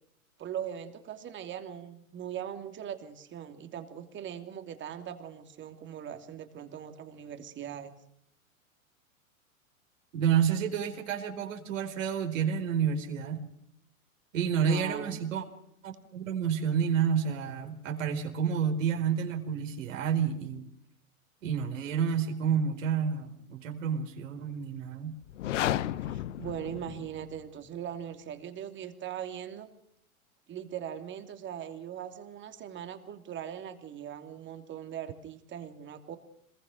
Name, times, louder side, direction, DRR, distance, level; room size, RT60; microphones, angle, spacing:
voice 1, 0.4-7.9 14.6-15.1 26.1-29.7 30.5-36.2, right 9 dB, 25° right, 7 dB, 2.9 m, -40 dB
voice 2, 10.1-13.5 14.3-15.4 15.8-20.7 21.4-25.2, right 7 dB, 60° right, 3 dB, 4.5 m, -29 dB
sound 1, 25.2-27.4, left 12 dB, 55° left, 1.1 m, -33 dB
26.5 x 21.5 x 6.5 m, 0.73 s
figure-of-eight pair, 105°, 43 cm